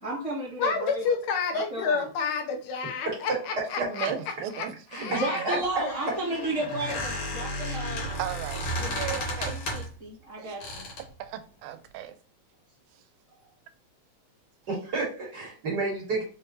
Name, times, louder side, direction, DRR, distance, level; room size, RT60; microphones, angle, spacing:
voice 1, 0.0-1.1 1.5-2.1 5.0-8.1 8.8-10.9, right 2 dB, 20° left, 0.9 m, -33 dB
voice 2, 0.6-4.1 4.5-4.7 4.9-5.6, left 5 dB, 85° left, 2.2 m, -29 dB
voice 3, 3.8-4.7 5.1-5.6 8.2-9.8 10.4-10.6 11.2-12.2, right 11 dB, 90° right, 2.0 m, -36 dB
voice 4, 4.9-5.6 14.7-16.2, right 3 dB, 40° right, 1.9 m, -30 dB
Squeak, 5.6-10.0 10.6-11.1, left 1 dB, 65° left, 2.5 m, -33 dB
5.1 x 3.5 x 2.9 m
omnidirectional pair, 3.4 m